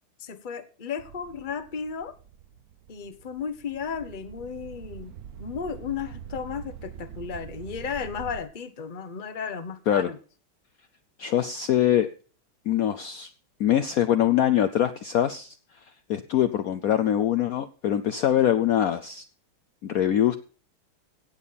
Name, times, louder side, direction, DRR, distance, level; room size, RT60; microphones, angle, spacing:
voice 1, 0.2-2.1 2.9-5.1 5.4-10.2, left 6 dB, 35° left, 12 dB, 0.8 m, -34 dB
sound 1, 1.0-8.4, right 8 dB, 60° right, 1.0 m, -44 dB
voice 2, 11.2-12.1 12.7-13.3 13.6-15.6 16.1-19.2 19.8-20.4, left 11 dB, 75° left, 9 dB, 0.8 m, -23 dB
17.0 x 7.2 x 4.1 m, 0.39 s
omnidirectional pair, 2.3 m